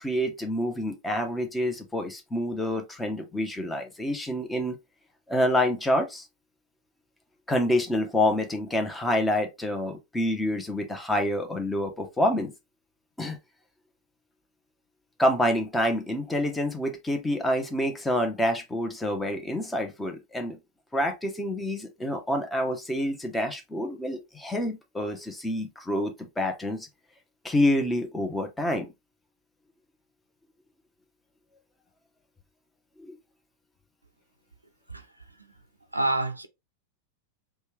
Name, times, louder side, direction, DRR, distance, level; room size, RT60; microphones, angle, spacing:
voice 1, 0.0-4.8 5.3-6.3 7.5-12.5 13.2-13.4 15.2-20.6 20.9-26.9 27.4-28.9 33.0-33.2, left 1 dB, 10° left, 0.8 m, -27 dB
voice 2, 35.9-36.5, right 2 dB, 85° right, 0.4 m, -27 dB
3.3 x 2.3 x 3.1 m
figure-of-eight pair, 90°, 0 cm